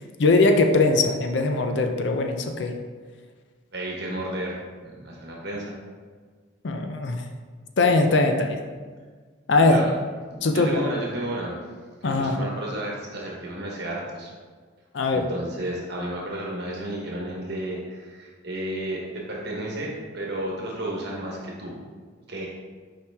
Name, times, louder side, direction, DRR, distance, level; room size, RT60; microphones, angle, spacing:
voice 1, 0.2-2.7 6.6-7.2 7.8-8.6 9.5-9.8 10.4-10.8 12.0-12.5 14.9-15.3, left 3 dB, 60° left, 5 dB, 0.5 m, -21 dB
voice 2, 3.7-5.8 9.6-9.9 10.4-11.6 12.0-14.3 15.1-21.8 22.3-22.5, right 1 dB, 50° right, -3 dB, 1.2 m, -32 dB
5.8 x 4.8 x 3.5 m, 1.5 s
head